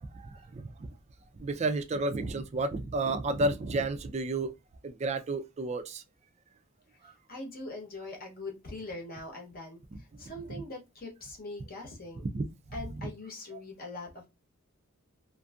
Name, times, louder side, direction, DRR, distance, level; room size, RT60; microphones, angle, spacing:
voice 1, 0.1-0.9 1.4-4.5 4.8-6.0 7.0-7.1 9.9-10.0 12.3-12.5, right 2 dB, 30° right, 0.3 m, -31 dB
voice 2, 7.3-9.8 10.2-12.2 12.7-14.3, left 2 dB, 45° left, 0.8 m, -42 dB
2.6 x 2.5 x 2.3 m
head